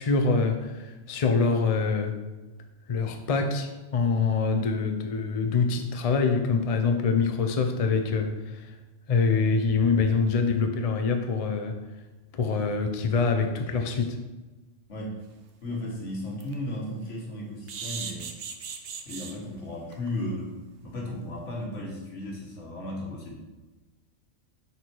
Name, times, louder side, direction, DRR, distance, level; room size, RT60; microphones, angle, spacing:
voice 1, 0.0-2.2 2.9-8.7 9.1-11.8 12.3-14.2, left 4 dB, 40° left, 5 dB, 0.5 m, -25 dB
sound 1, 15.4-15.5 15.9-16.0 16.4-16.5 17.7-19.3 19.9-20.1 20.4-20.5 20.8-20.9, right 6 dB, 60° right, 0.8 m, -37 dB
voice 2, 15.6-18.3 19.1-23.4, left 1 dB, 70° left, -1 dB, 1.8 m, -35 dB
6.3 x 4.3 x 4.5 m, 1.2 s
omnidirectional pair, 1.3 m